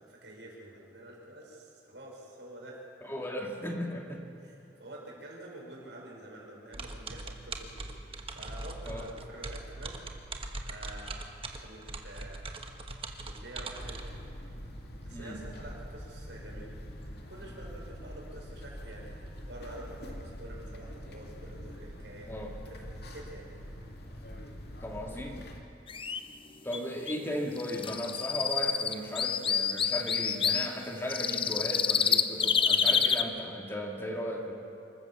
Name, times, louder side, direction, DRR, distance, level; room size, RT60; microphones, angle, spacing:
voice 1, 0.0-2.8 4.4-7.9 8.3-10.0 10.7-11.3 11.6-12.5 13.2-14.2 15.0-16.8 17.3-19.1 19.5-22.3 22.6-23.5 24.6-24.7 34.5-34.6, right 1 dB, 90° right, -2 dB, 5.6 m, -48 dB
voice 2, 3.0-4.3 8.9-9.1 15.1-15.4 22.3-22.5 24.8-25.5 26.6-34.5, equal, 15° left, 1 dB, 2.0 m, -36 dB
sound 1, 6.7-14.1, right 2 dB, 35° right, 1.3 m, -41 dB
sound 2, 13.8-25.6, equal, 65° left, 2.4 m, -44 dB
sound 3, 25.9-26.2 26.7-26.8 27.1-27.2 27.6-30.7 31.1-33.2, left 7 dB, 30° left, 0.7 m, -27 dB
26.0 x 14.0 x 7.1 m, 2.6 s
head